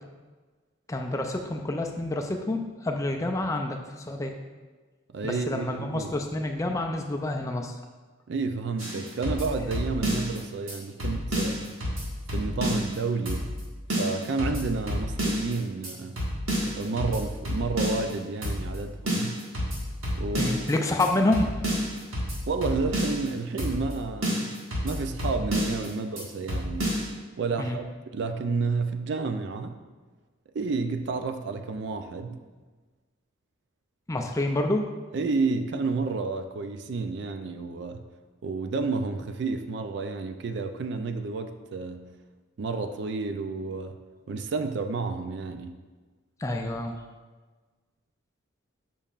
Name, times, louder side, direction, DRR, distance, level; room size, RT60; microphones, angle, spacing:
voice 1, 0.9-4.3 5.2-7.8 20.4-21.6 27.6-27.8 34.1-34.9 46.4-47.0, left 2 dB, 15° left, 3 dB, 0.3 m, -28 dB
voice 2, 5.1-6.1 8.3-11.7 12.3-13.5 14.0-16.2 16.6-19.4 20.2-20.6 22.5-24.5 24.8-26.9 27.4-27.8 28.1-29.8 30.5-32.4 35.1-38.0 38.4-42.1 42.6-44.0 44.3-45.7, right 4 dB, 55° right, 7 dB, 0.4 m, -30 dB
sound 1, 8.8-10.4 10.7-10.8 11.0-13.0 13.3-13.6 13.9-15.5 15.8-15.9 16.2-18.1 18.4-18.8 19.1-20.7 21.0-21.1 21.3-23.3 23.6-23.9 24.2-25.9 26.2-26.3 26.5-27.1, equal, 85° right, 1.7 m, -29 dB
7.1 x 5.4 x 2.4 m, 1.3 s
head